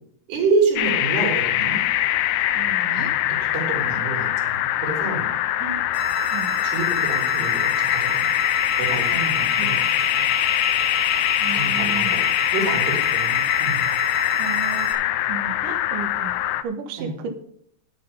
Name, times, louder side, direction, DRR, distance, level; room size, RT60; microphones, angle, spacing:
voice 1, 0.3-1.8 2.9-5.3 6.6-8.3 8.8-9.9 10.1-10.3 11.5-13.9 17.0-17.1, right 3 dB, 80° right, 1 dB, 5.4 m, -28 dB
sound 1, 0.8-16.6, left 13 dB, 85° left, 2.8 m, -23 dB
voice 2, 2.6-3.1 5.6-5.9 6.3-6.5 9.6-9.7 11.4-12.2 14.4-17.3, right 6 dB, 65° right, 5 dB, 2.5 m, -34 dB
sound 2, 5.9-14.9, right 2 dB, 50° left, 3.3 m, -31 dB
10.0 x 10.0 x 5.4 m, 0.64 s
omnidirectional pair, 4.7 m